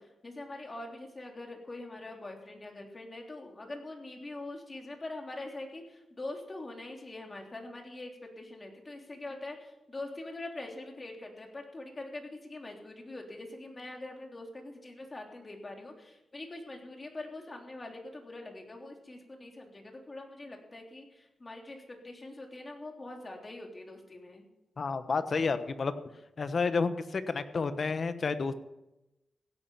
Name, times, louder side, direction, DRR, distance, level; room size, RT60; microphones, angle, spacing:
voice 1, 0.0-24.5, left 2 dB, 30° left, 2 dB, 3.5 m, -43 dB
voice 2, 24.8-25.9 26.4-28.6, left 4 dB, 50° left, 11 dB, 1.1 m, -30 dB
16.5 x 9.9 x 5.7 m, 0.96 s
cardioid pair, 80°, 0 cm